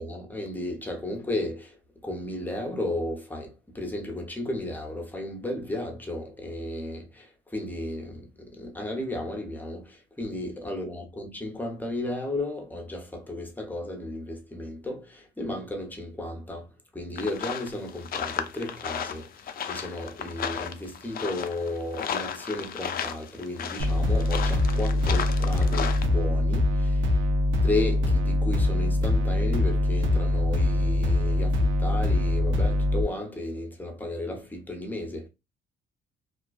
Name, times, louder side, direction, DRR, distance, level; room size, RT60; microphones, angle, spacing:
voice 1, 0.0-1.8 2.0-16.7 16.9-27.2 27.6-35.3, left 1 dB, 10° left, 0.8 m, -34 dB
sound 1, 17.2-26.1, left 8 dB, 50° left, 0.4 m, -34 dB
sound 2, 23.8-33.0, left 1 dB, 75° right, 0.6 m, -23 dB
2.4 x 2.2 x 2.3 m
cardioid pair, 90°, 20 cm